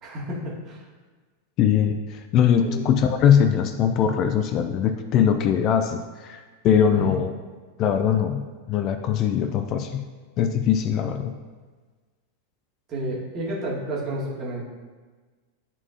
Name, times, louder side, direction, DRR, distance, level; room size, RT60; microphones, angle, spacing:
voice 1, 0.0-0.9 2.6-2.8 6.9-7.2 12.9-14.6, right 1 dB, 30° right, -5 dB, 2.0 m, -31 dB
voice 2, 1.6-7.3 7.8-10.1 10.4-11.4, left 8 dB, 35° left, 7 dB, 0.4 m, -21 dB
10.5 x 4.3 x 2.9 m, 1.4 s
figure-of-eight pair, 90°, 0 cm